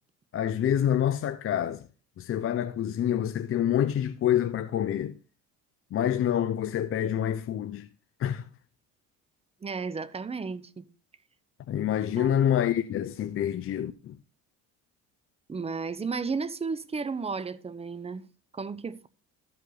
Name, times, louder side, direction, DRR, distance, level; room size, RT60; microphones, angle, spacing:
voice 1, 0.3-1.9 2.2-5.1 5.9-7.9 8.2-8.5 11.7-14.2, left 10 dB, 40° left, 0.6 m, -27 dB
voice 2, 9.6-10.9 12.2-12.3 15.5-18.2 18.5-19.1, right 4 dB, 15° right, 0.7 m, -33 dB
12.5 x 5.6 x 3.9 m
cardioid pair, 105°, 35 cm